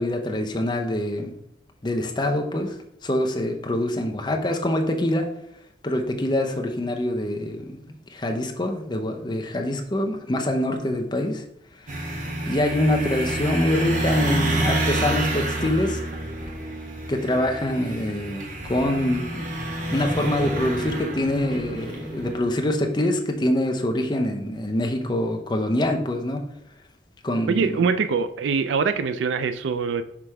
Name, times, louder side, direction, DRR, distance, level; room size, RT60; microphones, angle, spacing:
voice 1, 0.0-1.3 1.8-2.7 3.0-5.3 5.8-11.4 12.0-12.1 12.5-16.0 17.1-19.5 19.9-26.4 27.2-27.8, left 1 dB, 25° left, 3 dB, 0.7 m, -25 dB
sound 1, 11.9-22.4, right 1 dB, 45° right, 1.1 m, -29 dB
voice 2, 27.5-30.0, right 5 dB, 90° right, 11 dB, 0.4 m, -23 dB
5.9 x 3.3 x 4.7 m, 0.73 s
head